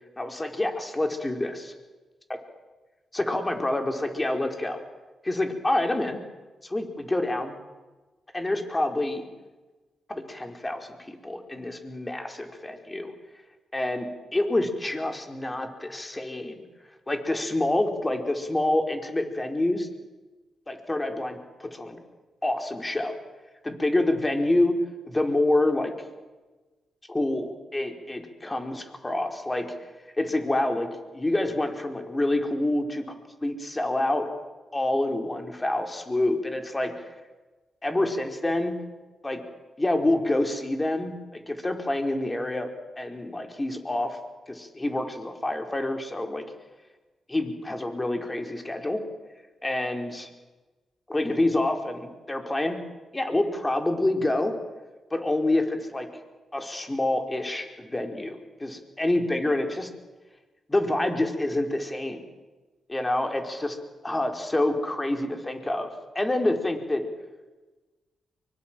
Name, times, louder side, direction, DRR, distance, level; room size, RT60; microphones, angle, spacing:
voice 1, 0.2-1.7 3.1-4.8 5.2-6.2 6.6-7.5 8.3-9.3 10.1-13.1 13.7-16.6 17.1-19.9 20.7-22.0 22.4-23.1 23.6-24.8 25.1-25.9 27.1-29.7 30.2-33.0 33.4-34.3 34.7-36.9 37.8-38.7 39.2-39.4 39.8-42.7 43.0-44.2 44.5-46.4 47.3-49.0 49.6-50.3 51.1-52.8 53.1-54.6 55.1-56.1 56.5-59.9 60.7-62.2 62.9-63.8 64.0-65.9 66.1-67.1, left 1 dB, 20° left, 5 dB, 4.8 m, -27 dB
24.0 x 24.0 x 7.7 m, 1.2 s
hypercardioid pair, 40°, 0 cm